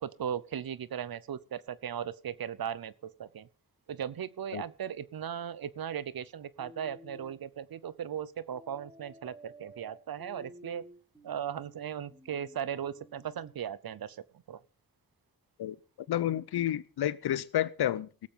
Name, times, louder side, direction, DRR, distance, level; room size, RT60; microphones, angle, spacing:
voice 1, 0.0-2.9 3.2-3.5 3.9-10.8 11.2-14.6, right 9 dB, 70° right, 19 dB, 0.8 m, -37 dB
sound 1, 6.6-7.4 8.5-13.6, equal, 10° right, 5.2 m, -54 dB
voice 2, 16.1-18.3, left 12 dB, 90° left, 19 dB, 0.7 m, -30 dB
18.0 x 7.5 x 5.3 m, 0.39 s
cardioid pair, 55°, 38 cm